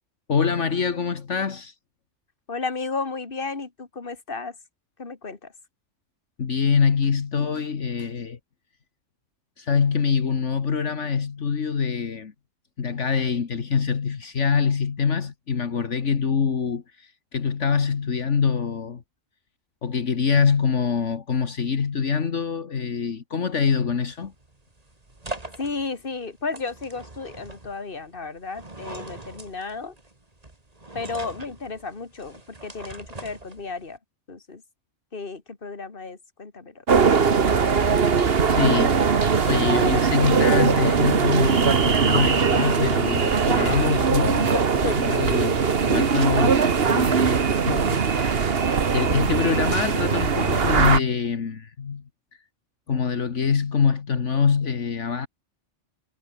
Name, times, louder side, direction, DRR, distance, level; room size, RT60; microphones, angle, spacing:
voice 1, 0.3-1.7 6.4-8.4 9.6-12.3 12.8-19.0 19.8-24.3 38.5-39.1 39.5-44.5 45.0-48.5 48.9-52.0 52.9-55.3, left 6 dB, 70° left, 1.8 m, -24 dB
voice 2, 2.5-4.6 5.0-5.5 25.6-30.0 30.9-34.0 34.3-34.6 35.1-36.8 42.1-42.9 43.7-44.0 44.5-45.0 45.8-45.9 48.5-48.7, left 4 dB, 45° left, 2.4 m, -33 dB
sound 1, 24.1-34.0, right 2 dB, 30° right, 2.9 m, -42 dB
sound 2, 36.9-51.0, right 5 dB, 50° right, 1.5 m, -20 dB
omnidirectional pair, 1.3 m